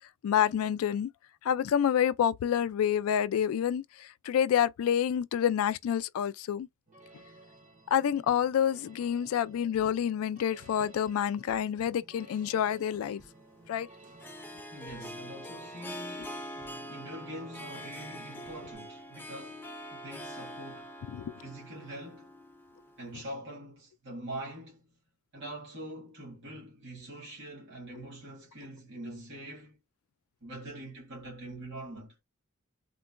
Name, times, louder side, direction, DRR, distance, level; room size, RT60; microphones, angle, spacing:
voice 1, 0.2-1.1 1.4-6.7 7.9-13.2 13.7-13.9 21.1-21.4, left 9 dB, 85° left, 0.3 m, -28 dB
sound 1, 6.9-18.8, right 2 dB, 35° right, 0.8 m, -55 dB
Harp, 12.8-23.2, equal, 10° left, 0.4 m, -44 dB
voice 2, 14.7-16.5 16.9-21.0 21.4-22.3 23.0-25.0 25.3-29.8 30.4-32.2, right 1 dB, 60° right, 1.8 m, -44 dB
3.7 x 2.2 x 2.4 m
head